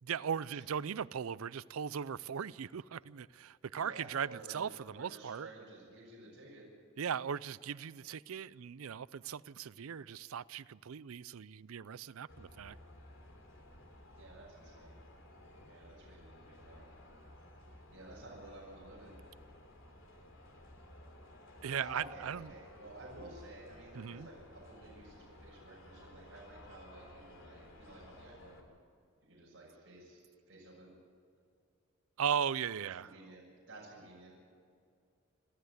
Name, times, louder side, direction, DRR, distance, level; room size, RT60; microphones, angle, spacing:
voice 1, 0.0-5.5 7.0-12.8 21.6-22.5 23.9-24.3 32.2-33.1, right 7 dB, 80° right, 0.5 m, -38 dB
voice 2, 3.7-6.7 14.1-15.0 15.6-16.8 17.9-19.2 21.7-28.6 29.2-30.2 30.5-30.9 33.0-34.4, right 2 dB, 55° right, 6.4 m, -52 dB
sound 1, 12.3-28.6, left 1 dB, 65° left, 3.2 m, -56 dB
28.0 x 13.0 x 8.2 m
head